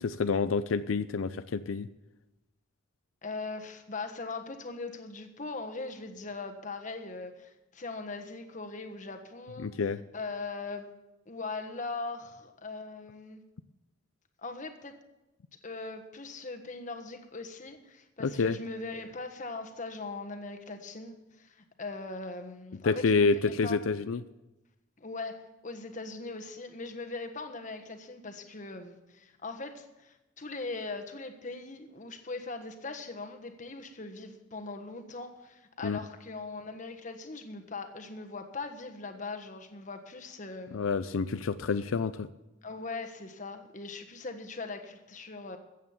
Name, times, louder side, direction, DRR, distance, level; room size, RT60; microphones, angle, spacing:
voice 1, 0.0-1.9 9.6-10.0 18.2-18.6 22.8-24.2 35.8-36.0 40.7-42.3, left 4 dB, 90° left, 12 dB, 0.5 m, -28 dB
voice 2, 3.2-9.7 10.1-10.9 11.3-13.4 14.4-14.9 15.6-23.8 25.0-40.8 42.6-45.6, left 3 dB, 40° left, 6 dB, 1.4 m, -40 dB
14.5 x 8.4 x 7.2 m, 1.0 s
head